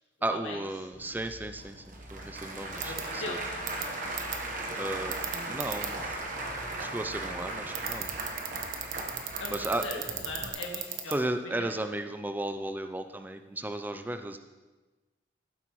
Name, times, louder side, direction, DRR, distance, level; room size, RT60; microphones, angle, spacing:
voice 1, 0.2-3.4 4.8-5.2 5.5-6.2 6.8-8.1 9.5-9.9 11.1-14.4, right 1 dB, 10° right, 8 dB, 0.4 m, -34 dB
Applause / Crowd, 0.9-10.5, right 2 dB, 45° right, 1.1 m, -37 dB
voice 2, 2.6-3.4 3.8-4.0 9.4-11.1 11.4-11.6, left 2 dB, 90° left, -1 dB, 2.2 m, -39 dB
sound 1, 2.8-3.0 3.7-3.8 4.2-4.4 5.1-5.9 7.7-11.1, right 11 dB, 80° right, 1.0 m, -33 dB
14.5 x 8.0 x 3.1 m, 1.2 s
head